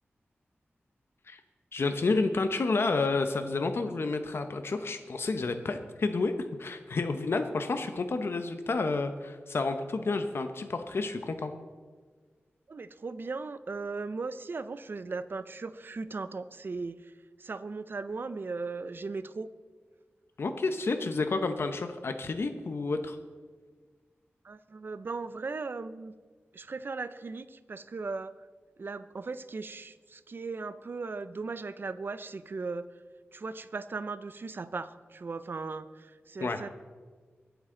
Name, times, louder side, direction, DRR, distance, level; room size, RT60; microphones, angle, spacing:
voice 1, 1.7-6.3 6.6-11.5 20.4-23.2 36.4-36.6, left 3 dB, 65° left, 7 dB, 0.9 m, -30 dB
voice 2, 12.7-17.1 17.4-19.5 24.4-26.1 26.5-28.4 28.8-32.9 33.3-36.7, right 4 dB, 55° right, 13 dB, 0.6 m, -37 dB
24.0 x 8.1 x 3.9 m, 1.5 s
wide cardioid pair, 95°, 4 cm